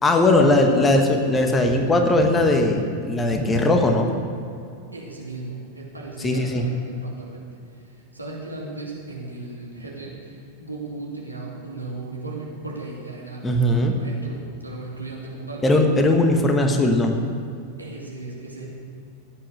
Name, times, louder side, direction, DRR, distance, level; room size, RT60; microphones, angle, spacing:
voice 1, 0.0-4.1 6.2-6.6 13.4-14.0 15.6-17.2, left 2 dB, 15° left, 4 dB, 1.4 m, -19 dB
voice 2, 4.9-7.5 8.1-15.6 17.8-18.7, right 2 dB, 85° right, -3 dB, 2.7 m, -36 dB
15.5 x 8.9 x 6.5 m, 2.5 s
figure-of-eight pair, 90°, 0 cm